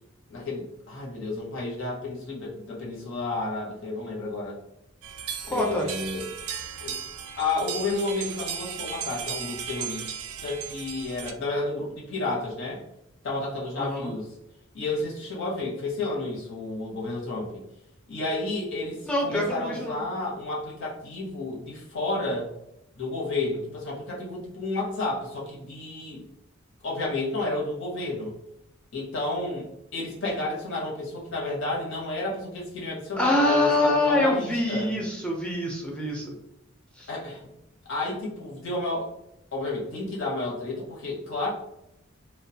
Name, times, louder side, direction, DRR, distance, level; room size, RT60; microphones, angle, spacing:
voice 1, 0.3-4.5 5.5-6.3 6.8-7.0 7.4-10.1 10.4-12.8 13.2-14.4 14.7-17.6 18.1-22.5 23.0-26.2 26.8-28.3 28.9-29.7 29.9-34.9 37.1-37.4 37.9-39.1 39.5-41.5, left 2 dB, 60° left, -4 dB, 0.8 m, -31 dB
sound 1, 5.0-11.3, right 8 dB, 75° right, 0.3 m, -36 dB
voice 2, 5.5-5.9 13.8-14.1 19.1-20.0 33.2-36.3 37.0-37.1, left 1 dB, 5° left, -2 dB, 0.3 m, -25 dB
2.3 x 2.2 x 2.6 m, 0.82 s
head